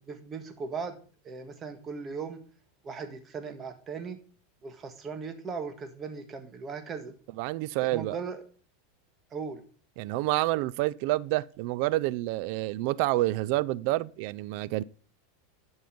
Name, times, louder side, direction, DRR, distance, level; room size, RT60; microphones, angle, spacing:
voice 1, 0.1-1.0 1.2-2.4 2.8-4.2 4.6-7.1 7.8-8.4 9.3-9.6, right 5 dB, 25° right, 1.7 m, -38 dB
voice 2, 7.4-8.2 10.0-14.8, right 18 dB, 60° right, 0.4 m, -28 dB
10.5 x 5.5 x 5.2 m
supercardioid pair, 130°, 0 cm